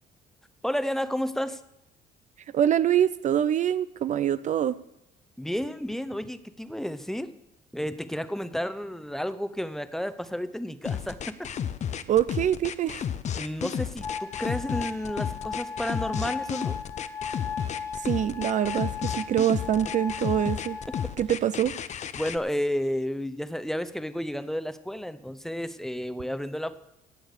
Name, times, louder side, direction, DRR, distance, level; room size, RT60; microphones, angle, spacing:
voice 1, 0.6-1.6 5.4-7.3 7.7-11.5 13.3-16.8 21.0-21.1 22.2-26.8, equal, ahead, 12 dB, 0.7 m, -31 dB
voice 2, 2.5-4.8 12.1-13.1 17.7-20.8 21.2-21.8, right 10 dB, 45° right, 15 dB, 0.5 m, -25 dB
sound 1, 10.8-22.4, left 8 dB, 45° left, 0.7 m, -32 dB
sound 2, 14.0-21.0, left 6 dB, 20° left, 1.4 m, -36 dB
17.5 x 7.1 x 6.5 m, 0.84 s
cardioid pair, 110°, 17 cm